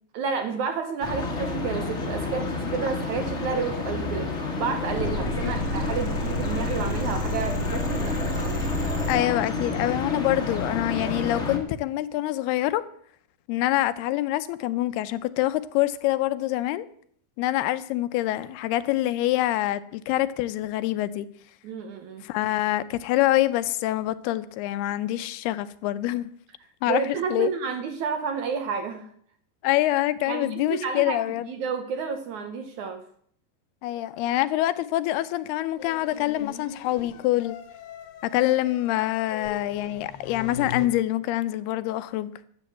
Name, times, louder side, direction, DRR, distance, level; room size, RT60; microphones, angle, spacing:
voice 1, 0.1-4.3 4.6-9.0 21.6-22.2 26.9-29.1 30.3-31.2 31.5-33.0, right 6 dB, 70° right, 2.0 m, -31 dB
sound 1, 1.0-11.6, left 3 dB, 35° left, 1.1 m, -30 dB
sound 2, 4.8-9.2, left 1 dB, 35° right, 4.8 m, -30 dB
voice 2, 9.1-12.8 13.5-16.9 17.4-21.3 22.2-26.3 26.8-27.5 29.6-31.5 33.8-37.6 38.2-42.3, left 15 dB, 90° left, 2.7 m, -25 dB
sound 3, 35.8-40.9, left 7 dB, 70° left, 2.5 m, -40 dB
12.5 x 8.7 x 7.8 m
omnidirectional pair, 4.5 m